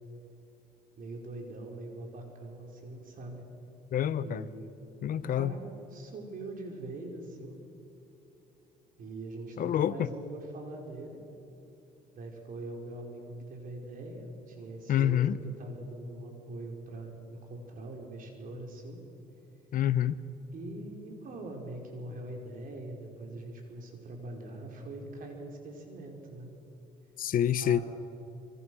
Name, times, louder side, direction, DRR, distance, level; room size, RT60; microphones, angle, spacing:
voice 1, 1.0-3.4 4.2-4.7 5.1-5.6 5.9-7.6 9.0-11.2 12.1-19.0 20.5-26.5 27.6-27.8, right 2 dB, 55° right, 1 dB, 4.8 m, -42 dB
voice 2, 3.9-4.5 5.0-5.5 9.6-10.1 14.9-15.4 19.7-20.2 27.2-27.8, left 10 dB, 55° left, 15 dB, 0.9 m, -27 dB
26.0 x 23.5 x 6.3 m, 2.9 s
cardioid pair, 110°, 17 cm